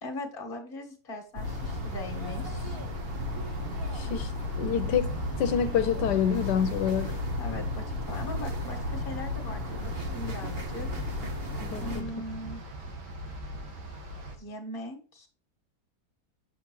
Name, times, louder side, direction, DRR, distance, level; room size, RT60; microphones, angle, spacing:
voice 1, 0.0-2.8 7.4-10.9 11.8-12.6 14.4-15.3, left 1 dB, 35° left, 1.6 m, -40 dB
sound 1, 1.3-12.0, left 2 dB, 40° right, 1.3 m, -34 dB
sound 2, 1.4-14.4, equal, 80° right, 2.1 m, -39 dB
voice 2, 3.9-4.3 4.6-5.1 5.4-7.2 11.6-12.1, left 8 dB, 85° left, 1.2 m, -27 dB
7.6 x 6.6 x 3.0 m
omnidirectional pair, 1.8 m